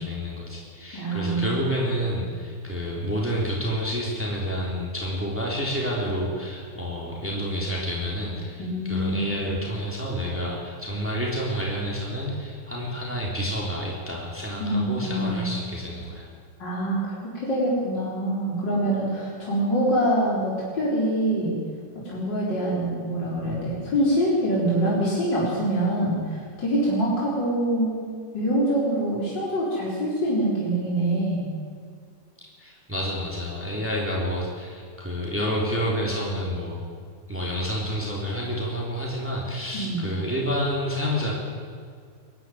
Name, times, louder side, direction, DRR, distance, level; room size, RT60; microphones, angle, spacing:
voice 1, 0.0-16.3 32.6-36.8 37.3-41.3, equal, 5° right, -3 dB, 3.6 m, -29 dB
voice 2, 0.9-1.5 8.6-9.6 14.6-15.5 16.6-17.0 17.3-21.6 21.9-27.9 28.3-31.5 39.7-40.0, right 1 dB, 80° left, -6 dB, 4.9 m, -25 dB
24.0 x 11.5 x 9.4 m, 2.1 s
omnidirectional pair, 1.9 m